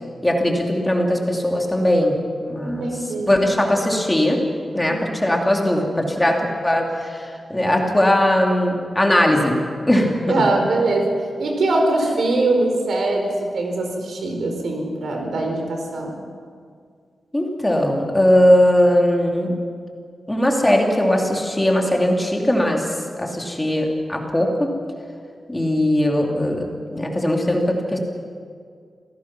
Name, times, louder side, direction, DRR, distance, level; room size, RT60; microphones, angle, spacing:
voice 1, 0.2-4.4 4.7-9.6 9.9-10.4 17.3-19.5 20.3-22.9 23.2-24.7 25.5-28.0, left 1 dB, 10° left, 0 dB, 2.6 m, -19 dB
voice 2, 2.6-3.3 4.9-5.0 10.3-11.1 11.4-16.2, right 2 dB, 75° right, 2 dB, 4.3 m, -22 dB
27.5 x 17.5 x 6.0 m, 2.1 s
wide cardioid pair, 180°, 0 cm